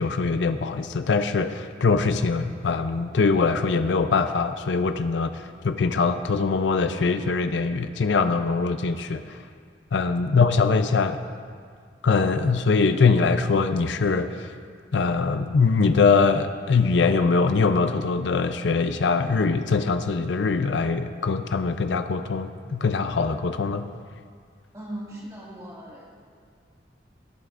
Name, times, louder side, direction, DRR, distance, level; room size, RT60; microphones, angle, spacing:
voice 1, 0.0-9.4 9.9-11.2 12.0-14.5 14.9-23.9, left 4 dB, 80° left, 9 dB, 0.5 m, -22 dB
voice 2, 24.7-26.2, right 1 dB, 20° right, -6 dB, 2.1 m, -39 dB
17.0 x 11.0 x 2.5 m, 2.1 s
head